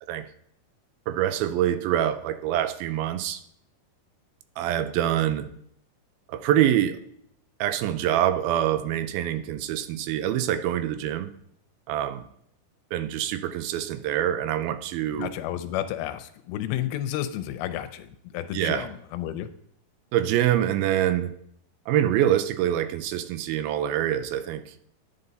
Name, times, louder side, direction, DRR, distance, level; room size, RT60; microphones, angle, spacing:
voice 1, 1.1-3.4 4.6-5.5 6.3-7.0 7.6-11.3 11.9-12.3 12.9-15.3 18.5-18.9 20.1-21.3 21.9-24.7, right 11 dB, 80° right, 2.5 m, -25 dB
voice 2, 15.1-18.1 18.3-19.5, left 12 dB, 90° left, 2.5 m, -31 dB
9.6 x 9.5 x 4.0 m
omnidirectional pair, 4.3 m